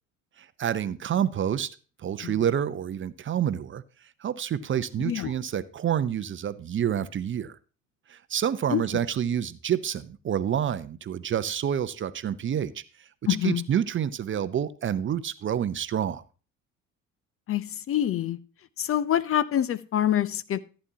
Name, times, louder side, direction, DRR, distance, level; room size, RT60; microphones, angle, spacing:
voice 1, 0.4-3.8 4.2-7.6 8.1-12.8 13.4-16.2, right 9 dB, 30° right, 0.7 m, -28 dB
voice 2, 13.3-13.6 17.5-18.4 18.8-20.6, left 11 dB, 35° left, 0.6 m, -26 dB
14.5 x 8.7 x 2.8 m
hypercardioid pair, 60°, 38 cm